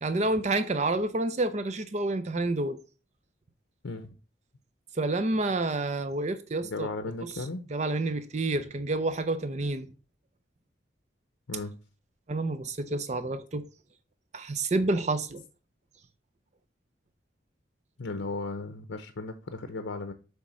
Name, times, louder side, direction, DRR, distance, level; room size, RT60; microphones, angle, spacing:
voice 1, 0.0-2.8 5.0-6.9 7.2-7.3 7.7-9.9 12.3-13.6 14.3-15.4, right 2 dB, 35° right, 0.5 m, -29 dB
voice 2, 6.6-7.6 11.5-11.7 18.0-20.1, left 3 dB, 80° left, 0.7 m, -35 dB
8.2 x 3.5 x 6.2 m
head